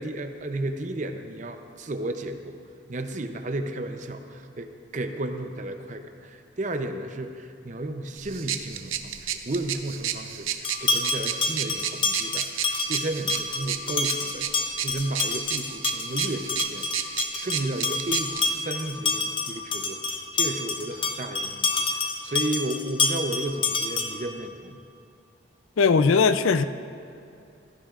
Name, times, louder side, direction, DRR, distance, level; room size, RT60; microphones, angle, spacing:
voice 1, 0.0-2.6 2.9-14.5 14.8-20.0 20.3-24.8, right 1 dB, 35° right, 7 dB, 0.6 m, -33 dB
sound 1, 8.2-18.5, right 10 dB, 80° right, 0.6 m, -33 dB
sound 2, 10.6-24.3, left 4 dB, 25° left, 0.7 m, -28 dB
voice 2, 25.8-26.6, left 5 dB, 85° left, 11 dB, 0.5 m, -19 dB
16.0 x 13.5 x 2.5 m, 2.5 s
head